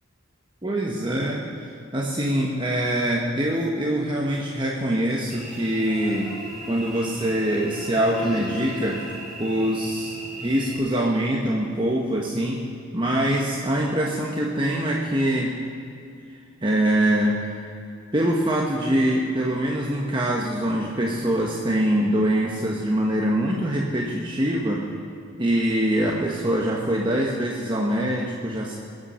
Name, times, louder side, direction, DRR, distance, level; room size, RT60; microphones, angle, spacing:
voice 1, 0.6-6.3 6.7-9.0 9.4-10.1 10.4-12.6 12.9-15.6 16.3-17.6 18.1-24.8 25.4-28.8, right 1 dB, 25° right, -2 dB, 1.1 m, -24 dB
Cricket / Buzz, 5.3-10.8, right 1 dB, ahead, 4.1 m, -36 dB
22.5 x 9.1 x 5.6 m, 2.5 s
head